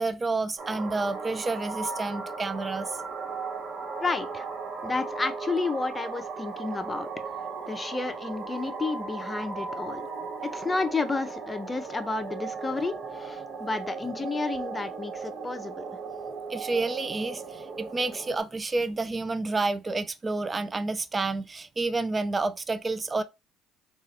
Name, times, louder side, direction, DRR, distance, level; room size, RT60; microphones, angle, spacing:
voice 1, 0.0-2.9 16.5-23.2, right 3 dB, 30° right, 0.4 m, -29 dB
sound 1, 0.6-18.4, right 4 dB, 55° right, 1.3 m, -37 dB
voice 2, 4.0-4.5 4.8-7.1 7.7-10.1 10.4-16.0, left 3 dB, 25° left, 0.6 m, -31 dB
3.8 x 2.4 x 2.8 m
hypercardioid pair, 60°, 0 cm